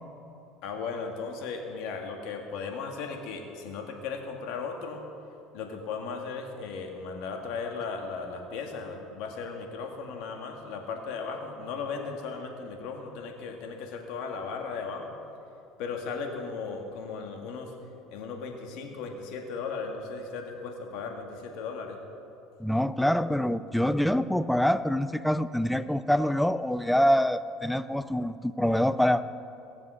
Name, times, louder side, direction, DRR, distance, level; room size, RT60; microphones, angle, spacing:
voice 1, 0.6-5.0 5.5-15.1 15.8-17.7 18.1-22.0, left 5 dB, 70° left, 3 dB, 2.0 m, -36 dB
voice 2, 22.6-29.2, equal, 5° left, 14 dB, 0.5 m, -25 dB
18.0 x 7.3 x 6.4 m, 2.7 s
supercardioid pair, 100°, 0 cm